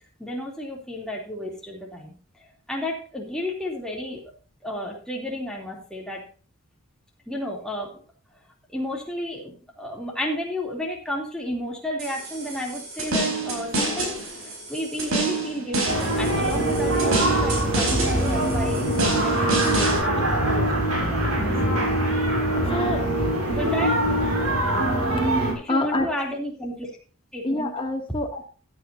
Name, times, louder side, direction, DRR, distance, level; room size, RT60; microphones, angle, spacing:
voice 1, 0.2-4.2 4.6-6.2 7.3-8.0 8.7-21.5 22.7-23.1 23.5-23.9 25.5-26.9 27.3-27.7, equal, 5° left, -1 dB, 2.9 m, -32 dB
sound 1, 12.0-20.0, right 3 dB, 65° right, 4.5 m, -28 dB
sound 2, 15.8-25.5, right 1 dB, 85° right, 5.1 m, -23 dB
voice 2, 22.6-23.0 25.3-26.1 27.4-28.5, left 2 dB, 25° left, 2 dB, 2.2 m, -27 dB
15.5 x 9.7 x 2.7 m, 0.38 s
head